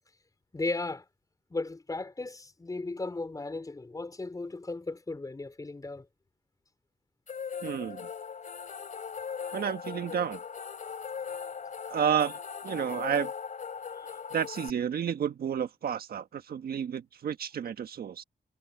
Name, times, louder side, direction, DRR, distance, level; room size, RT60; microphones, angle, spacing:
voice 1, 0.5-1.0 1.5-6.1 13.9-14.1, left 3 dB, 25° left, 4.3 m, -36 dB
sound 1, 7.3-14.7, left 6 dB, 55° left, 3.1 m, -39 dB
voice 2, 7.6-8.1 9.5-10.4 11.9-12.4 12.6-13.3 14.3-18.2, right 8 dB, 80° right, 1.4 m, -31 dB
wide cardioid pair, 130°, 16 cm